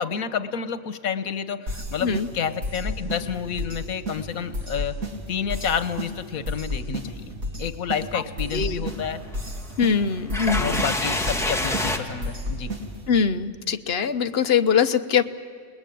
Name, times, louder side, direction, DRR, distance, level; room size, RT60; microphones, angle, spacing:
voice 1, 0.0-4.9 5.3-9.2 10.6-12.7, left 7 dB, 85° left, 13 dB, 1.5 m, -29 dB
sound 1, 1.7-13.2, equal, 80° right, 3.1 m, -33 dB
voice 2, 8.5-8.8 9.8-10.8 13.1-15.3, left 6 dB, 50° left, 9 dB, 1.1 m, -22 dB
sound 2, 8.9-12.0, left 1 dB, ahead, 1.7 m, -28 dB
28.5 x 20.5 x 9.3 m, 2.3 s
omnidirectional pair, 1.4 m